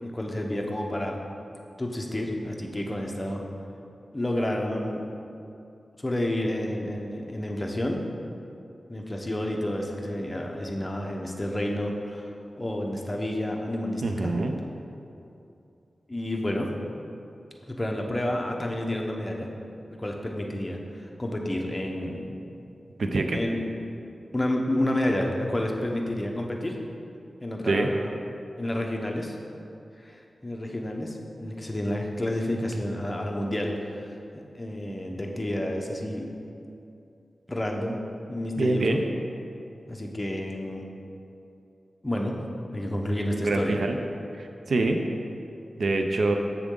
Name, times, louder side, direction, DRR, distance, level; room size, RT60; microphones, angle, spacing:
voice 1, 0.0-1.2 1.8-3.4 4.1-5.0 6.0-8.0 8.9-12.3 12.6-14.3 16.1-16.8 17.7-19.5 20.0-22.3 23.3-23.6 24.3-26.8 27.4-28.1 28.6-29.4 30.0-36.3 37.5-38.0 38.3-39.0 39.9-40.8 42.0-42.4 42.7-43.8, left 1 dB, 20° left, 1 dB, 0.9 m, -30 dB
voice 2, 14.0-14.5 23.0-23.4 27.7-27.9 38.6-39.0 43.4-44.0 44.4-45.0 45.8-46.4, right 2 dB, 75° right, 4 dB, 0.5 m, -25 dB
7.2 x 7.1 x 3.8 m, 2.6 s
wide cardioid pair, 90°, 0 cm